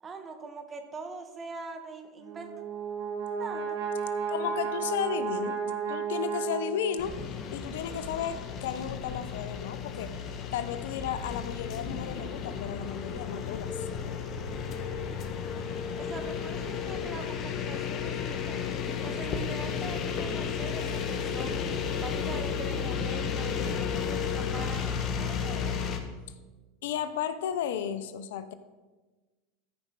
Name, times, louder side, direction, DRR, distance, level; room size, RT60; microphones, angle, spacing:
voice 1, 0.0-2.5 3.4-3.8 15.9-18.6 19.0-21.7 22.0-24.9 25.2-25.7, right 4 dB, 25° right, 7 dB, 1.4 m, -42 dB
Brass instrument, 2.2-7.2, right 6 dB, 85° right, 1.7 m, -33 dB
voice 2, 4.3-7.2 7.5-13.8 26.8-28.5, left 9 dB, 75° left, 12 dB, 0.6 m, -34 dB
sound 1, 7.0-26.0, left 7 dB, 45° left, 1.2 m, -33 dB
14.5 x 5.1 x 4.6 m, 1.2 s
hypercardioid pair, 100°, 0 cm